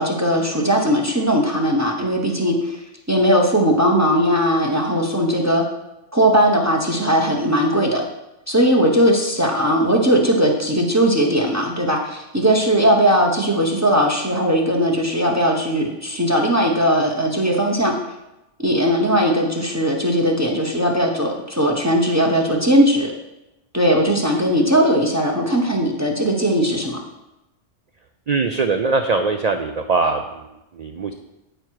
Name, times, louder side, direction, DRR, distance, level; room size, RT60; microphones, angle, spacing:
voice 1, 0.0-2.8 3.1-5.6 6.1-8.0 8.5-17.9 18.6-23.1 23.7-27.0, equal, 15° right, 0 dB, 0.7 m, -18 dB
voice 2, 28.3-30.2 30.8-31.1, right 4 dB, 80° right, 6 dB, 0.3 m, -21 dB
9.0 x 4.8 x 4.6 m, 0.94 s
omnidirectional pair, 1.3 m